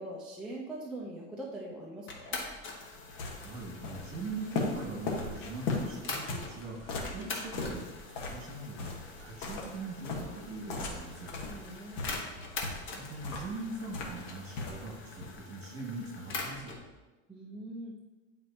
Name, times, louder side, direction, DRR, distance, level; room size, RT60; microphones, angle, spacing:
voice 1, 0.0-2.4 11.4-12.2 17.3-18.1, right 1 dB, ahead, -5 dB, 0.3 m, -42 dB
sound 1, 2.1-6.5 7.0-16.8, left 3 dB, 30° left, 1.0 m, -44 dB
sound 2, 2.4-15.4, left 3 dB, 70° left, 1.4 m, -39 dB
voice 2, 3.4-11.3 12.9-16.7, right 3 dB, 35° right, -1 dB, 1.9 m, -41 dB
9.6 x 4.3 x 2.8 m, 1.2 s
supercardioid pair, 150°, 39 cm